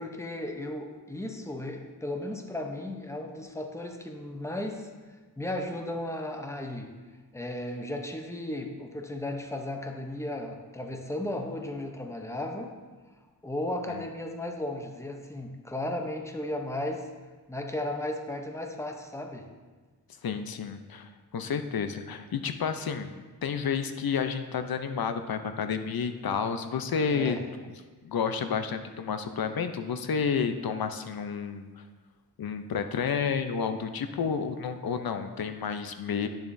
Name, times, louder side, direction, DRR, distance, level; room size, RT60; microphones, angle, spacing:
voice 1, 0.0-4.9 5.4-6.9 7.3-12.7 13.4-17.1 17.5-19.5 27.1-27.4, left 1 dB, 5° left, 3 dB, 0.7 m, -35 dB
voice 2, 20.2-23.1 23.4-27.4 28.0-31.8 32.4-36.3, left 6 dB, 65° left, 8 dB, 0.6 m, -30 dB
10.5 x 6.9 x 2.6 m, 1.4 s
wide cardioid pair, 100°, 39 cm